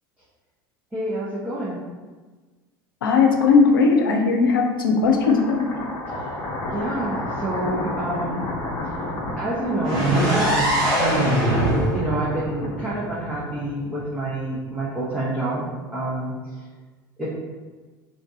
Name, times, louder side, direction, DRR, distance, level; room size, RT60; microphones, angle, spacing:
voice 1, 0.9-1.8 6.2-6.3 6.7-8.4 9.4-10.8 11.8-16.7 17.2-17.3, right 1 dB, 10° right, -9 dB, 1.0 m, -28 dB
voice 2, 3.0-5.8, left 4 dB, 70° left, 3 dB, 0.6 m, -18 dB
sound 1, 5.0-13.3, left 1 dB, 35° left, 0.8 m, -32 dB
sound 2, 9.8-13.7, right 1 dB, 50° right, 1.3 m, -22 dB
3.6 x 2.6 x 3.8 m, 1.3 s
figure-of-eight pair, 70°, 12 cm